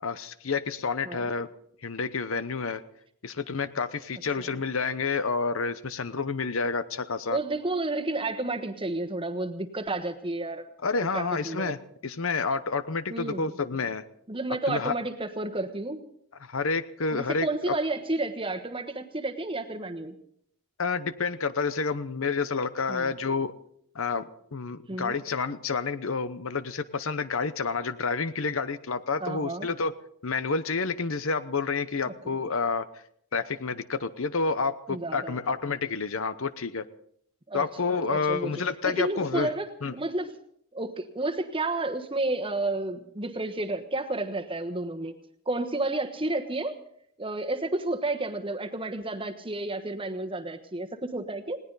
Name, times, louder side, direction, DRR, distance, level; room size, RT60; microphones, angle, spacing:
voice 1, 0.0-1.5 1.8-2.8 3.2-7.4 10.8-14.0 14.7-15.0 16.4-17.8 20.8-23.5 23.9-29.9 30.2-32.9 33.3-36.9 37.5-39.5 39.8-39.9, left 4 dB, 65° left, 13 dB, 0.8 m, -29 dB
voice 2, 7.3-10.6 11.1-11.7 13.1-13.5 14.3-16.0 17.1-20.2 22.9-23.1 24.9-25.2 29.2-29.7 32.0-32.3 34.9-35.4 37.5-37.6 38.1-38.5 38.8-40.3 40.7-45.1 45.5-46.8 47.2-51.6, right 2 dB, 25° right, 6 dB, 1.2 m, -31 dB
20.0 x 17.5 x 4.0 m, 0.67 s
head